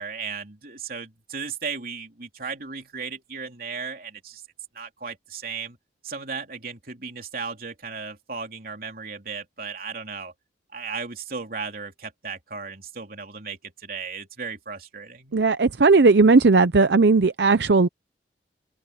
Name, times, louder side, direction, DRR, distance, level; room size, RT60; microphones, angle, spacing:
voice 1, 0.0-4.4 4.7-5.8 6.0-10.3 10.7-15.3, right 5 dB, 55° right, 3.5 m, -35 dB
voice 2, 15.3-17.9, right 3 dB, 75° right, 0.7 m, -17 dB
head